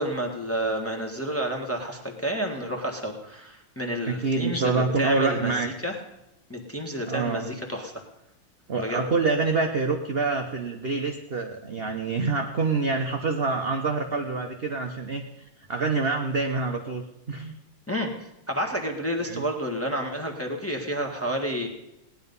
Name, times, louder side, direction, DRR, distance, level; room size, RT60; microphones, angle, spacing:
voice 1, 0.0-6.0 6.5-7.9 8.7-9.0 17.9-18.1 18.5-21.7, equal, 10° left, 0 dB, 1.2 m, -30 dB
voice 2, 4.1-5.7 7.1-7.5 8.7-15.2 15.7-17.5 19.2-19.4, right 4 dB, 50° right, 3 dB, 0.6 m, -26 dB
18.0 x 10.0 x 5.5 m, 0.90 s
omnidirectional pair, 2.4 m